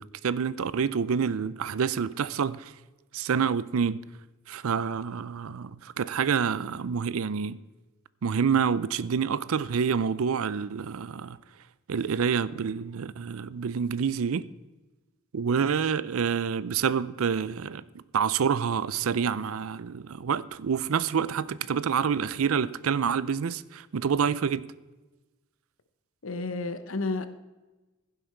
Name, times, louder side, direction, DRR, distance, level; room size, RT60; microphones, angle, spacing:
voice 1, 0.0-2.7 3.1-4.0 4.5-7.6 8.2-11.4 11.9-14.4 15.3-17.8 18.1-24.7, right 6 dB, 85° right, 0.5 m, -27 dB
voice 2, 26.2-27.3, left 3 dB, 70° left, 0.9 m, -31 dB
15.5 x 7.8 x 4.5 m
head